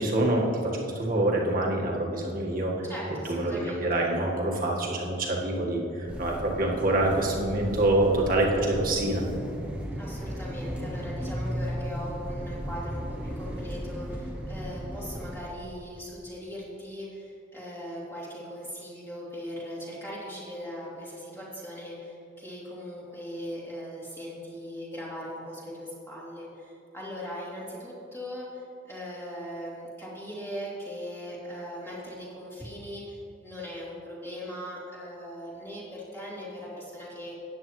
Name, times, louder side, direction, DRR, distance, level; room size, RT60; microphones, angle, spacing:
voice 1, 0.0-2.7 3.3-9.3, right 1 dB, 45° right, -2 dB, 1.6 m, -26 dB
voice 2, 2.8-4.0 10.0-37.3, equal, 15° left, -7 dB, 2.9 m, -39 dB
sound 1, 6.1-15.4, equal, 5° right, 1.0 m, -35 dB
14.0 x 9.6 x 3.2 m, 2.6 s
head